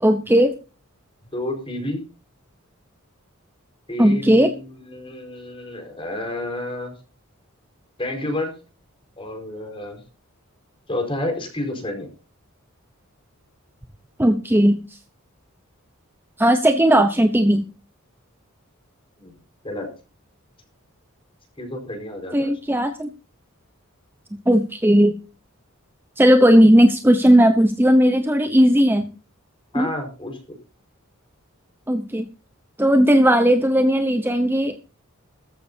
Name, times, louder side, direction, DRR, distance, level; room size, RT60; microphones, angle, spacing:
voice 1, 0.0-0.5 4.0-4.5 14.2-14.8 16.4-17.6 22.3-23.1 24.5-25.1 26.2-29.1 29.7-29.9 31.9-32.2 32.8-34.8, equal, 10° right, 8 dB, 0.8 m, -16 dB
voice 2, 1.3-2.0 3.9-6.9 8.0-8.5 9.2-10.0 10.9-12.1 19.2-19.3 19.6-19.9 21.6-22.5 29.7-30.4, left 1 dB, 25° left, 3 dB, 4.7 m, -30 dB
16.5 x 14.0 x 2.7 m, 0.33 s
head